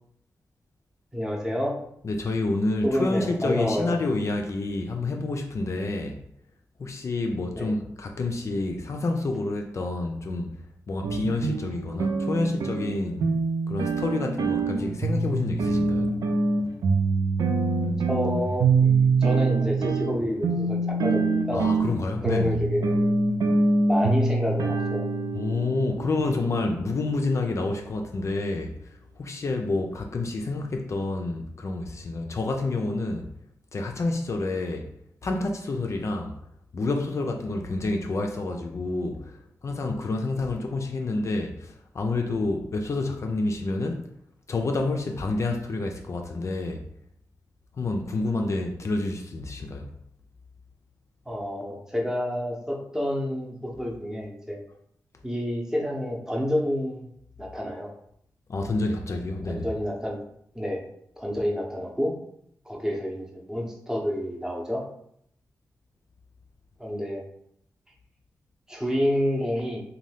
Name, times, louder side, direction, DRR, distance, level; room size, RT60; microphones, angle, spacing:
voice 1, 1.1-1.8 2.8-4.0 7.5-7.7 18.1-21.7 22.2-23.1 23.9-25.0 51.3-54.6 55.2-57.1 57.4-57.9 59.5-60.2 60.5-60.8 61.2-62.1 62.7-64.8 66.8-67.2 68.7-69.8, equal, 10° right, 0.7 m, -29 dB
voice 2, 2.0-6.2 6.8-10.5 10.9-13.3 13.7-16.1 21.5-22.5 25.3-33.3 33.7-34.9 35.2-36.4 36.7-44.1 44.5-46.8 47.7-49.9 58.5-59.7, left 2 dB, 50° left, 0.4 m, -28 dB
sound 1, 11.0-27.3, right 3 dB, 90° right, 0.4 m, -25 dB
2.6 x 2.2 x 3.3 m
cardioid pair, 65°, 6 cm